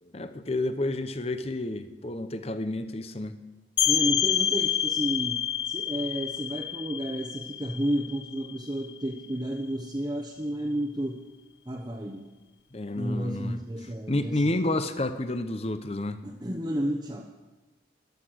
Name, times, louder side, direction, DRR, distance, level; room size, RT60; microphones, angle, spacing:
voice 1, 0.0-3.4 12.7-13.6 14.1-16.2, left 2 dB, 35° left, 10 dB, 0.8 m, -30 dB
sound 1, 3.8-9.3, left 9 dB, 70° left, 1.0 m, -28 dB
voice 2, 3.8-5.4 5.6-11.2 11.7-12.3 13.0-14.8 16.2-17.3, equal, 20° right, 0 dB, 1.0 m, -31 dB
13.5 x 12.0 x 6.4 m, 1.1 s
head